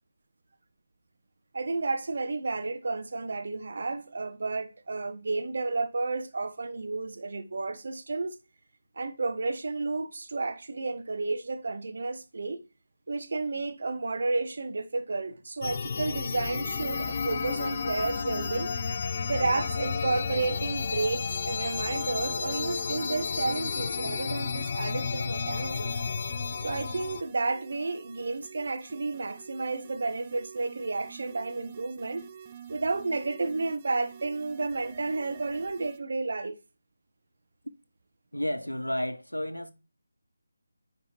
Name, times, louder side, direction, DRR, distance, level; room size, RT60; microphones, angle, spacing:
voice 1, 1.5-8.4 9.0-12.6 13.1-18.7 19.3-26.0 26.6-32.3 32.7-36.6, right 3 dB, 50° right, 0.8 m, -31 dB
sound 1, 15.6-27.2, left 5 dB, 35° left, 0.4 m, -32 dB
sound 2, 16.4-36.0, right 8 dB, 20° right, 0.5 m, -48 dB
voice 2, 38.3-39.7, left 1 dB, 85° left, 0.8 m, -31 dB
9.3 x 4.8 x 2.9 m
figure-of-eight pair, 155°, 0 cm